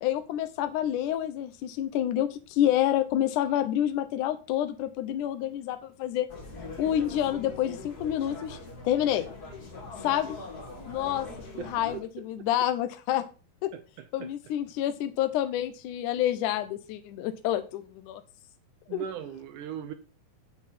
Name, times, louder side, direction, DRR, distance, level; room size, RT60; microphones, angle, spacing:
voice 1, 0.0-6.3 6.8-8.6 8.8-9.3 10.0-10.4 10.9-11.3 11.6-13.3 13.6-13.7 14.1-18.2 18.9-19.0, left 11 dB, 75° left, 1.9 m, -28 dB
sound 1, 6.3-12.0, left 3 dB, 40° left, 1.4 m, -42 dB
voice 2, 11.6-12.0 13.7-14.3 18.9-19.9, right 10 dB, 80° right, 1.8 m, -39 dB
8.5 x 8.3 x 4.2 m
omnidirectional pair, 4.3 m